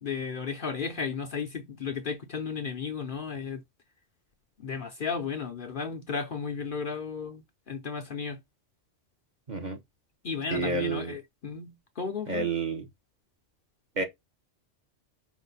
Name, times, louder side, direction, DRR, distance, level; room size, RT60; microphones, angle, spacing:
voice 1, 0.0-3.6 4.6-8.4 10.2-12.5, left 5 dB, 50° left, 0.8 m, -34 dB
voice 2, 9.5-9.8 10.5-11.1 12.3-12.9 14.0-14.1, right 4 dB, 40° right, 1.2 m, -29 dB
5.1 x 2.5 x 4.0 m
omnidirectional pair, 1.2 m